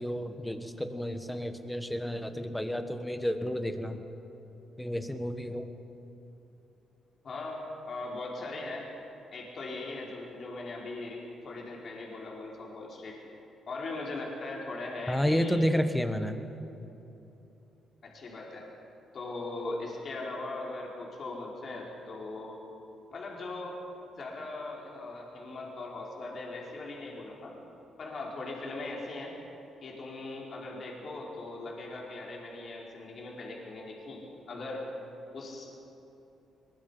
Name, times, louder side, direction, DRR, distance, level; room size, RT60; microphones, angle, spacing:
voice 1, 0.0-4.0 4.8-5.7 15.1-16.4, equal, 5° left, 7 dB, 1.6 m, -31 dB
voice 2, 7.2-8.9 9.3-13.2 13.7-15.6 18.0-18.7 19.1-22.6 23.1-23.8 24.1-27.5 28.0-29.3 29.8-34.8 35.3-35.7, left 2 dB, 50° left, -3 dB, 4.4 m, -39 dB
21.5 x 21.5 x 5.7 m, 2.9 s
cardioid pair, 90°, 0 cm